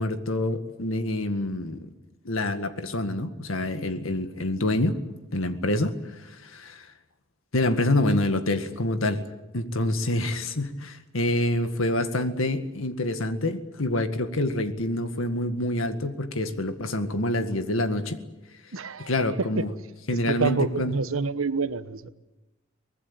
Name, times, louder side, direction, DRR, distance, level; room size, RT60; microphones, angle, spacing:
voice 1, 0.0-1.9 2.3-5.0 5.3-5.9 6.2-6.9 7.5-9.2 9.5-18.2 19.1-19.7 20.1-20.9, left 1 dB, 75° left, 9 dB, 1.9 m, -26 dB
voice 2, 18.7-19.1 19.6-19.7 20.3-22.1, right 4 dB, 80° right, 13 dB, 1.1 m, -27 dB
24.0 x 20.0 x 8.8 m, 1.0 s
head